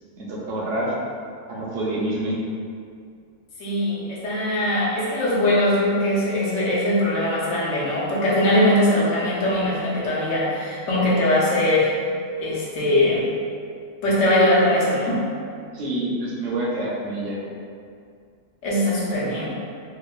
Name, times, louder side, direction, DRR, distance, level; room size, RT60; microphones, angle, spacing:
voice 1, 0.2-0.9 1.5-2.4 15.7-17.4, right 1 dB, 70° right, -5 dB, 0.8 m, -27 dB
voice 2, 3.6-11.9 12.4-13.3 14.0-15.3 18.6-19.6, left 1 dB, 70° left, -7 dB, 1.0 m, -21 dB
3.0 x 2.0 x 2.3 m, 2.3 s
omnidirectional pair, 1.4 m